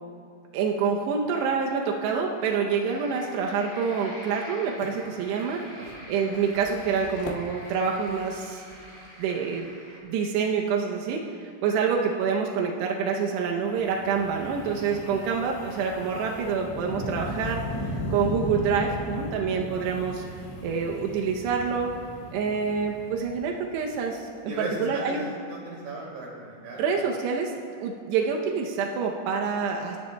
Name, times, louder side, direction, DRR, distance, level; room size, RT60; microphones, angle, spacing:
voice 1, 0.5-8.6 9.2-9.7 10.0-20.2 20.6-21.9 22.3-24.5 24.8-25.2 26.8-27.5 27.8-30.0, right 6 dB, 85° right, 0 dB, 2.4 m, -27 dB
sound 1, 2.9-10.0, equal, 25° right, 1.4 m, -46 dB
sound 2, 4.7-9.7, left 3 dB, 90° left, 3.8 m, -46 dB
Wind, 13.6-23.9, left 1 dB, 75° left, 5.3 m, -36 dB
voice 2, 15.0-15.3 19.8-19.9 24.5-25.2 25.5-26.8, right 2 dB, 50° right, -4 dB, 3.6 m, -37 dB
28.0 x 10.0 x 2.3 m, 2.3 s
omnidirectional pair, 5.8 m